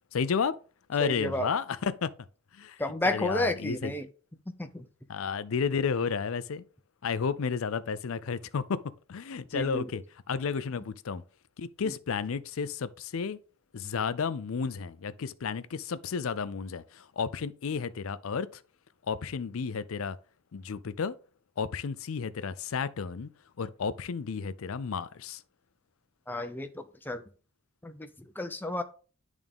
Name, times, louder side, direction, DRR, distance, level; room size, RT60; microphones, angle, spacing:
voice 1, 0.1-0.5 0.9-2.1 2.5-3.9 5.1-6.6 7.0-8.8 9.1-11.2 11.6-13.4 13.7-18.6 19.1-20.2 20.5-21.2 21.6-23.3 23.6-25.4, left 6 dB, 70° left, 0.5 m, -32 dB
voice 2, 1.0-1.5 2.8-4.0 4.6-4.8 9.5-9.9 26.3-27.2 27.8-28.1 28.4-28.8, left 1 dB, 10° left, 0.5 m, -31 dB
10.5 x 3.6 x 3.6 m
head